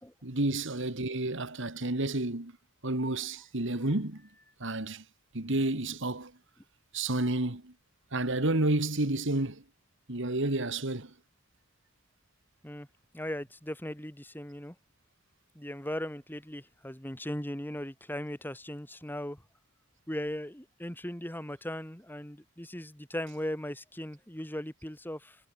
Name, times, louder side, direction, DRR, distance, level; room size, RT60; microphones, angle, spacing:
voice 1, 0.2-2.5 2.8-4.2 4.6-5.0 5.3-6.3 6.9-7.7 8.1-9.6 10.1-11.1, right 2 dB, 65° right, 2.2 m, -30 dB
voice 2, 13.1-14.7 15.5-19.4 20.1-25.4, left 1 dB, 10° left, 3.0 m, -38 dB
head